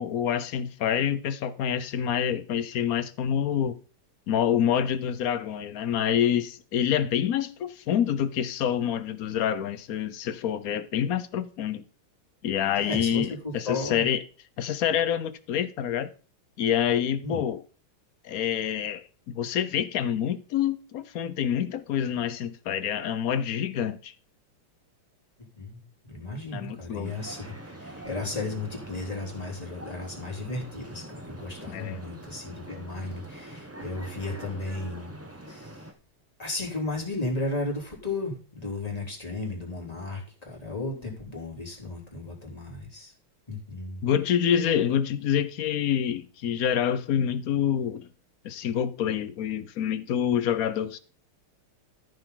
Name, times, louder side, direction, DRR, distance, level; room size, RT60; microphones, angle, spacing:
voice 1, 0.0-3.8 4.3-11.8 12.4-14.2 14.6-16.1 16.6-17.6 18.2-24.1 26.5-27.1 31.7-32.0 44.0-48.1 48.4-51.0, left 9 dB, 65° left, 0.8 m, -27 dB
voice 2, 12.7-14.0 17.2-17.4 25.6-35.9 36.4-43.1 43.5-44.1, left 2 dB, 15° left, 3.4 m, -34 dB
sound 1, 27.0-35.9, right 1 dB, 20° right, 0.4 m, -44 dB
14.0 x 6.8 x 3.9 m
omnidirectional pair, 2.4 m